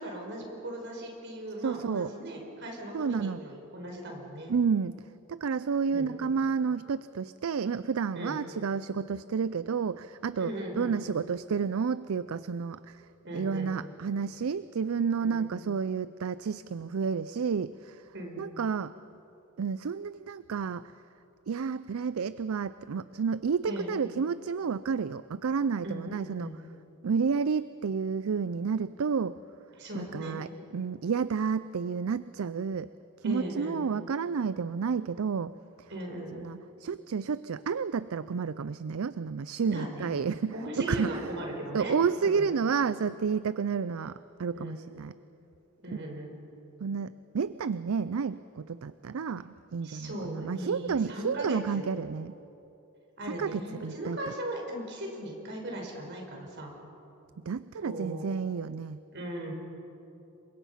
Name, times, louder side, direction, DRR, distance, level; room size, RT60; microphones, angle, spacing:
voice 1, 0.0-4.5 5.9-6.1 8.1-8.4 10.4-11.0 13.3-13.7 15.2-15.5 18.1-18.4 23.6-24.0 25.8-26.6 29.8-30.4 33.2-33.8 35.9-36.4 39.6-40.1 40.5-41.9 42.2-42.5 44.5-44.8 45.8-46.3 49.8-51.9 53.2-56.7 57.8-58.3 59.1-59.5, right 1 dB, 55° right, 1 dB, 5.0 m, -38 dB
voice 2, 1.6-2.1 2.9-3.4 4.5-4.9 5.3-13.0 13.3-18.1 18.4-18.9 19.6-20.8 21.5-26.6 27.0-29.4 30.0-32.9 33.2-35.9 36.3-41.3 41.7-45.1 45.9-46.2 46.8-52.3 53.3-54.2 57.5-59.0, right 6 dB, 70° right, 15 dB, 0.4 m, -31 dB
28.5 x 24.0 x 5.7 m, 2.9 s
head